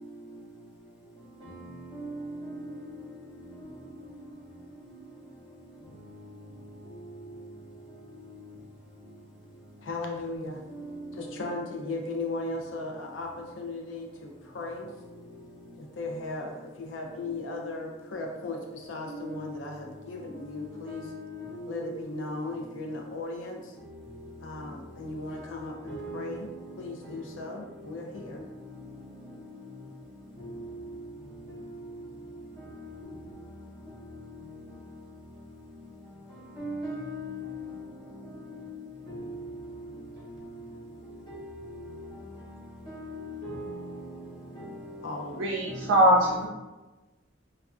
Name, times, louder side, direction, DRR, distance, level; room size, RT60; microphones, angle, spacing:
voice 1, 9.8-10.6 11.1-14.9 15.8-21.0 21.7-23.8 24.4-26.5 26.8-28.4 45.0-45.4, left 2 dB, 80° left, 0.4 m, -37 dB
voice 2, 36.6-37.4 41.3-41.4 42.9-43.6, equal, 25° left, 0.6 m, -37 dB
voice 3, 45.4-46.5, right 1 dB, 80° right, 0.3 m, -22 dB
2.3 x 2.3 x 2.3 m
head